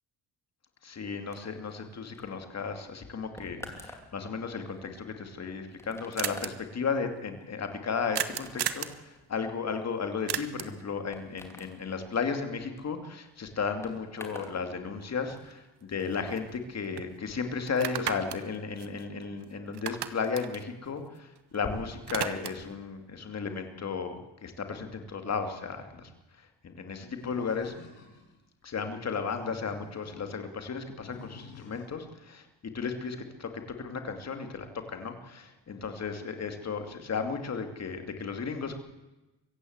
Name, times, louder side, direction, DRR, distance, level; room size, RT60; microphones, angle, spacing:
voice 1, 0.8-26.1 26.4-27.7 28.6-38.8, left 5 dB, 35° left, 6 dB, 2.6 m, -34 dB
sound 1, 1.3-14.6 14.9-15.5, left 1 dB, 5° left, 2.9 m, -50 dB
sound 2, 5.2-5.3 5.5-5.6 5.8-5.9 6.2-6.5 8.1-9.0 10.3-10.8 15.0-15.1 15.5-16.7 17.0-17.1 17.7-19.4 19.7-21.6 21.8-22.7, right 10 dB, 60° right, 1.3 m, -35 dB
Animal, 27.2-28.4 29.1-30.2 31.0-32.0, left 5 dB, 75° left, 7.3 m, -49 dB
24.0 x 15.5 x 8.1 m, 1.0 s
cardioid pair, 150°, 44 cm